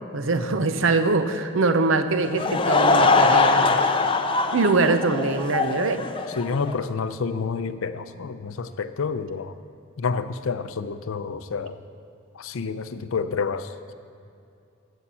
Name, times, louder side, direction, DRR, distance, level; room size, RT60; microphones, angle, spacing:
voice 1, 0.1-3.9 4.5-6.0, right 3 dB, 65° right, 9 dB, 0.7 m, -23 dB
Laughter / Crowd, 2.2-6.8, left 3 dB, 25° left, 0.5 m, -21 dB
voice 2, 6.3-9.6 10.0-11.8 12.3-13.9, left 5 dB, 75° left, 12 dB, 0.5 m, -29 dB
11.0 x 7.2 x 7.5 m, 2.6 s
head